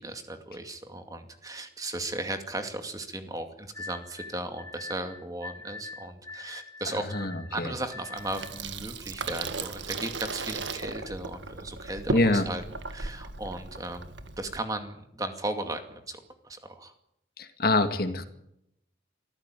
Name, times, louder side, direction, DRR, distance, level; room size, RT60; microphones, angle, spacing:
voice 1, 0.0-12.6 12.9-16.9, right 2 dB, 20° right, 6 dB, 2.3 m, -36 dB
sound 1, 3.7-8.6, left 3 dB, 15° left, 1.8 m, -44 dB
voice 2, 6.9-7.7 12.1-12.5 17.4-18.2, left 2 dB, 50° left, 8 dB, 2.1 m, -26 dB
Water tap faucet / Sink (filling or washing), 8.2-14.6, right 3 dB, 75° right, 1.7 m, -36 dB
24.0 x 15.0 x 9.2 m, 0.78 s
head